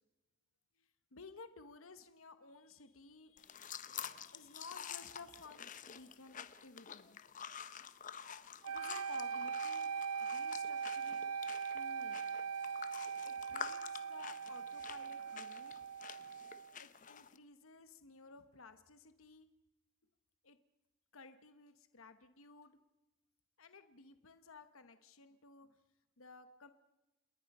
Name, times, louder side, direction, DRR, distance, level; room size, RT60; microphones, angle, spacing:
voice 1, 0.8-7.2 8.7-9.9 10.2-11.4 11.7-12.2 13.2-15.8 16.8-19.5 20.4-20.6 21.1-22.8 23.6-25.8 26.2-26.7, left 3 dB, 75° left, 10 dB, 1.1 m, -56 dB
sound 1, 3.4-17.4, left 8 dB, 35° left, 0.7 m, -49 dB
sound 2, 8.6-16.7, right 6 dB, 90° right, 0.7 m, -41 dB
28.5 x 20.5 x 5.4 m, 1.0 s
head